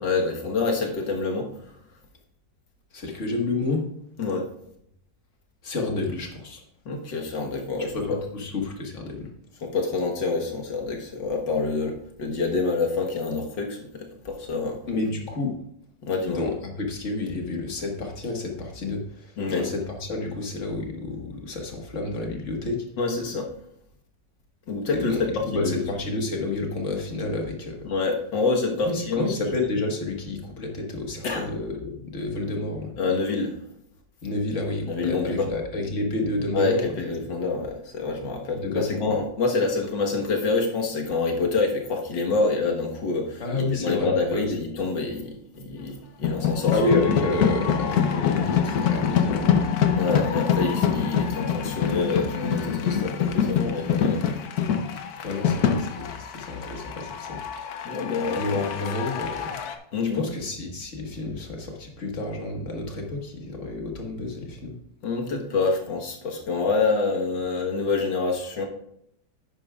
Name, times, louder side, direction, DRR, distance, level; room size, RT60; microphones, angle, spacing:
voice 1, 0.0-1.5 4.2-4.5 6.9-8.2 9.6-14.8 16.0-16.4 19.4-19.7 23.0-23.5 24.7-25.8 27.9-29.4 31.2-31.5 33.0-33.6 34.9-35.5 36.5-46.9 50.0-54.2 57.8-58.4 59.9-60.2 65.0-68.7, left 3 dB, 80° left, 1 dB, 2.1 m, -27 dB
voice 2, 2.9-4.1 5.6-6.6 7.9-9.3 14.9-15.5 16.3-22.9 24.9-27.8 28.8-32.9 34.2-36.9 38.5-39.1 43.4-44.5 46.7-49.6 55.2-57.4 58.3-59.6 60.1-64.8, left 2 dB, 45° left, 1 dB, 1.8 m, -30 dB
sound 1, 46.2-59.7, left 7 dB, 65° left, 1.2 m, -25 dB
11.0 x 9.0 x 2.4 m, 0.73 s
omnidirectional pair, 1.9 m